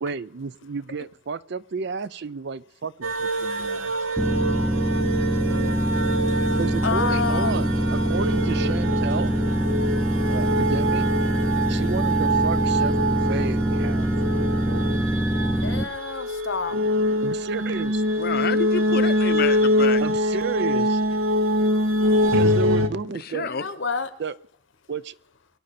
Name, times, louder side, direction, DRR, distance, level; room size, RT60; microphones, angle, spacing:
voice 1, 0.0-3.1 3.4-3.9 6.6-9.3 10.3-11.1 11.7-15.0 17.2-17.9 20.0-20.9 22.3-23.5 24.2-24.4 24.9-25.0, right 5 dB, 60° right, 17 dB, 0.5 m, -32 dB
sound 1, 3.0-22.9, equal, 85° right, 1.0 m, -24 dB
sound 2, 4.2-15.8, right 1 dB, 10° right, 0.6 m, -24 dB
voice 2, 5.5-5.8 6.8-7.7 15.6-16.7 23.4-24.1, left 5 dB, 70° left, 12 dB, 1.1 m, -29 dB
voice 3, 18.2-20.0 23.2-23.6, left 5 dB, 50° left, 13 dB, 0.7 m, -28 dB
23.5 x 10.5 x 4.3 m, 0.68 s
head